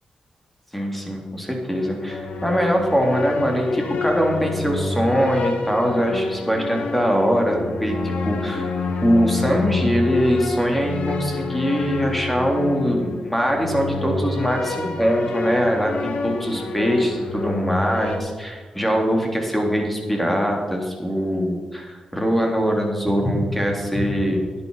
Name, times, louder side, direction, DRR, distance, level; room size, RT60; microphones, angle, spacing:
voice 1, 0.7-8.7 9.0-24.4, equal, 5° left, 1 dB, 3.5 m, -22 dB
sound 1, 1.8-18.2, left 3 dB, 80° left, 1.5 m, -28 dB
10.5 x 10.5 x 5.8 m, 1.5 s
cardioid pair, 55°, 2 cm